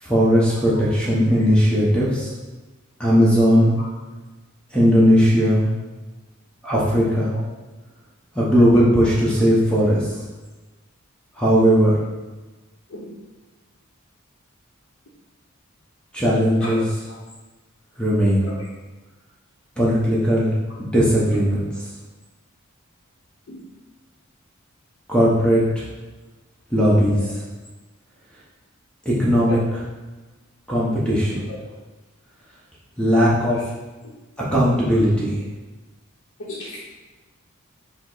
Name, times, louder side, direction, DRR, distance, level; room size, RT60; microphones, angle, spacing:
voice 1, 0.0-2.3 3.0-3.7 4.7-5.7 6.6-7.3 8.3-10.2 11.4-12.0 16.1-16.8 18.0-18.5 19.8-20.5 20.8-21.7 25.1-25.9 26.7-27.2 29.0-29.6 30.7-31.4 33.0-33.6 34.4-35.4, equal, 5° left, -7 dB, 0.7 m, -18 dB
voice 2, 36.4-36.8, left 1 dB, 65° left, -7 dB, 0.7 m, -35 dB
5.0 x 2.0 x 3.9 m, 1.2 s
head